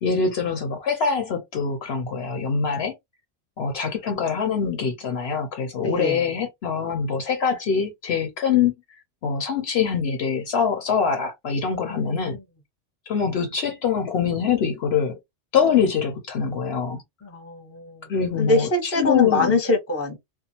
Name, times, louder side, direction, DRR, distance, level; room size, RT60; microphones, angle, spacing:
voice 1, 0.0-2.9 3.6-8.7 9.2-12.4 13.1-15.2 15.5-17.0 18.1-19.6, left 6 dB, 65° left, 0.8 m, -24 dB
voice 2, 5.8-6.2 11.9-12.4 17.2-18.1 18.4-20.2, left 2 dB, 15° left, 0.7 m, -24 dB
2.4 x 2.3 x 2.7 m
omnidirectional pair, 1.2 m